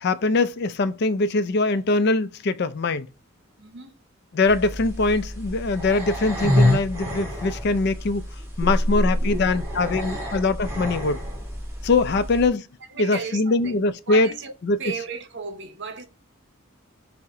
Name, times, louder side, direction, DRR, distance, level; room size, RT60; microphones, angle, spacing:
voice 1, 0.0-3.1 4.3-8.2 8.6-11.2 11.8-12.6 13.0-14.3 14.7-14.8, left 3 dB, 50° left, 0.4 m, -22 dB
voice 2, 3.6-4.0 8.6-10.3 12.1-12.4 12.9-13.8 14.1-14.5 14.8-16.0, right 4 dB, 55° right, 0.8 m, -36 dB
sound 1, 4.5-12.5, left 1 dB, 10° right, 1.4 m, -27 dB
5.6 x 2.1 x 3.6 m
head